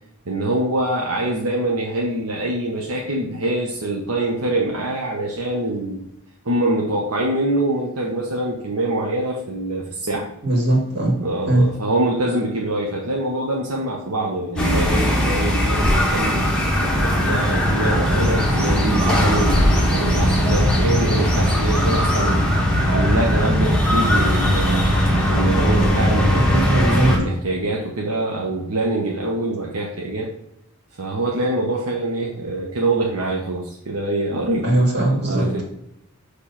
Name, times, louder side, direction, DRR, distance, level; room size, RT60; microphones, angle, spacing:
voice 1, 0.3-6.0 6.4-10.3 11.2-16.5 17.0-22.4 22.8-24.8 25.3-26.7 27.1-30.3 31.0-34.7 35.2-35.6, right 2 dB, 80° right, -2 dB, 1.0 m, -24 dB
voice 2, 10.4-11.1 11.5-11.7 26.5-27.1 34.6-35.6, right 1 dB, 50° right, -2 dB, 2.4 m, -19 dB
sound 1, 14.6-27.2, equal, 5° left, 1.4 m, -19 dB
6.6 x 3.4 x 5.7 m, 0.76 s
head